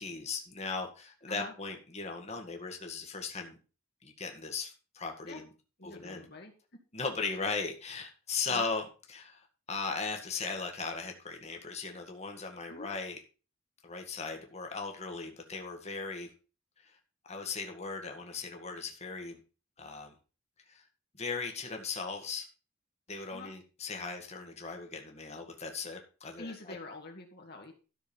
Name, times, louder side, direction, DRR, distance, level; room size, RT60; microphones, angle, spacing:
voice 1, 0.0-3.6 4.0-5.5 5.8-6.3 6.9-13.2 13.8-16.3 17.3-19.4 19.8-20.1 20.7-20.8 21.2-22.5 23.1-26.5, left 4 dB, 30° left, 3 dB, 1.8 m, -38 dB
voice 2, 5.8-6.5 8.5-8.7 12.7-12.9 23.3-23.5 26.4-27.7, left 2 dB, 50° left, 2 dB, 2.0 m, -46 dB
13.0 x 6.4 x 5.3 m, 0.34 s
head